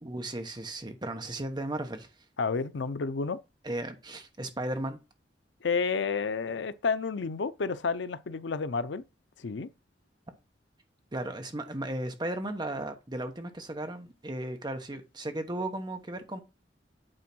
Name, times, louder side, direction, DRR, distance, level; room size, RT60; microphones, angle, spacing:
voice 1, 0.0-2.1 3.6-5.0 11.1-16.4, right 1 dB, 25° right, 1.1 m, -35 dB
voice 2, 2.4-3.4 5.6-9.0 9.4-9.7, left 4 dB, 85° left, 0.6 m, -30 dB
8.8 x 3.7 x 6.1 m
head